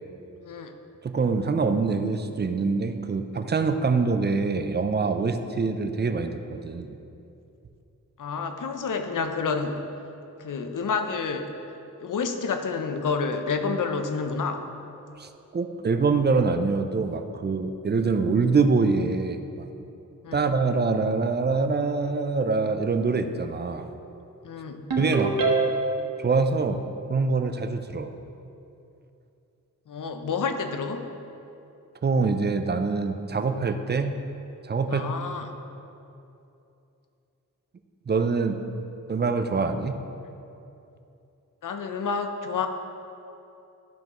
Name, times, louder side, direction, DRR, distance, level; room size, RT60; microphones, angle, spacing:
voice 1, 0.4-0.7 8.2-9.8 10.4-11.5 12.0-14.7 20.2-20.5 24.4-24.9 29.9-31.1 34.9-35.6 41.6-42.7, left 5 dB, 65° left, 7 dB, 0.7 m, -29 dB
voice 2, 1.0-7.0 15.2-19.7 20.3-23.9 25.0-25.4 26.2-28.1 32.0-34.2 34.6-35.1 38.1-38.6 39.1-40.0, right 4 dB, 30° right, 8 dB, 0.4 m, -25 dB
Ringtone, 24.9-26.1, right 3 dB, 90° right, 1.1 m, -24 dB
12.0 x 5.4 x 3.0 m, 2.8 s
wide cardioid pair, 90°, 34 cm